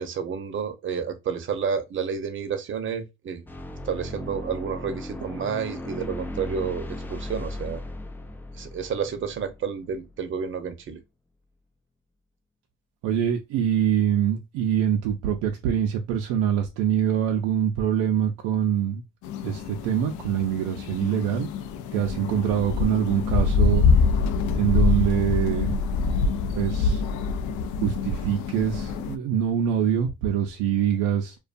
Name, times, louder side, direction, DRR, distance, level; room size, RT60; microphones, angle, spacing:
voice 1, 0.0-3.4 3.8-7.8 8.5-11.0, right 6 dB, 40° right, 0.7 m, -30 dB
sound 1, 3.5-10.1, left 1 dB, 5° left, 0.3 m, -36 dB
voice 2, 13.0-19.0 19.4-21.5 21.9-23.9 24.5-25.7 26.6-27.0 27.8-31.4, right 9 dB, 75° right, 0.5 m, -24 dB
sound 2, 19.2-29.1, left 4 dB, 65° left, 0.5 m, -25 dB
2.4 x 2.2 x 2.4 m
supercardioid pair, 80°, 32 cm